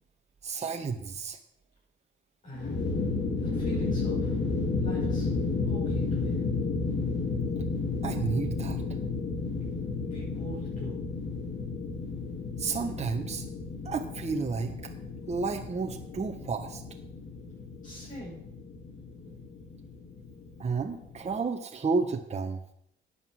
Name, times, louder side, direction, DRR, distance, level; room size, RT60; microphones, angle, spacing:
voice 1, 0.4-1.4 8.0-8.8 12.6-13.4 13.8-14.7 15.3-16.8 20.6-22.6, right 4 dB, 35° right, 4 dB, 1.3 m, -31 dB
voice 2, 2.4-2.8 3.4-4.4 4.8-5.3 5.7-6.4 10.1-11.0 17.8-18.4 19.2-19.3, equal, 40° left, -6 dB, 6.2 m, -42 dB
sound 1, 2.5-21.3, left 4 dB, 60° left, 3.5 m, -32 dB
11.0 x 8.3 x 7.6 m, 0.74 s
cardioid pair, 90°, 20 cm